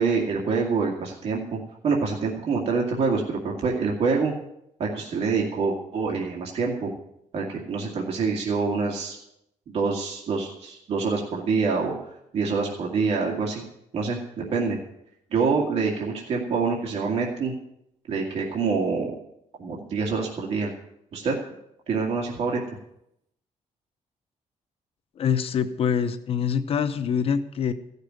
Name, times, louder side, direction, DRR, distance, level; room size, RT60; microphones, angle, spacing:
voice 1, 0.0-1.6 1.8-4.3 4.8-6.9 7.3-9.2 9.7-13.6 13.9-14.2 14.5-14.8 15.3-17.5 18.1-19.1 19.6-20.7 21.1-21.4 21.9-22.6, right 4 dB, 55° right, -1 dB, 2.2 m, -26 dB
voice 2, 25.2-27.7, left 7 dB, 50° left, 10 dB, 0.7 m, -25 dB
15.0 x 6.7 x 9.4 m, 0.78 s
cardioid pair, 155°, 13 cm